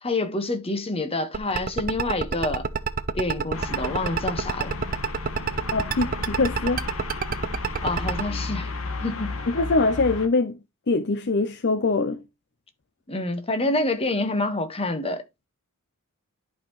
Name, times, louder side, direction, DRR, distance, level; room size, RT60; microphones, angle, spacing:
voice 1, 0.0-2.7 3.1-4.7 7.8-8.7 9.0-9.4 13.1-15.2, left 2 dB, 25° left, 1.4 m, -27 dB
sound 1, 1.3-8.2, right 5 dB, 40° right, 0.8 m, -26 dB
sound 2, 3.5-10.3, left 3 dB, 75° left, 1.5 m, -34 dB
voice 2, 5.7-6.8 9.5-10.6 10.9-12.2, left 3 dB, 50° left, 0.7 m, -23 dB
11.0 x 5.7 x 3.1 m
head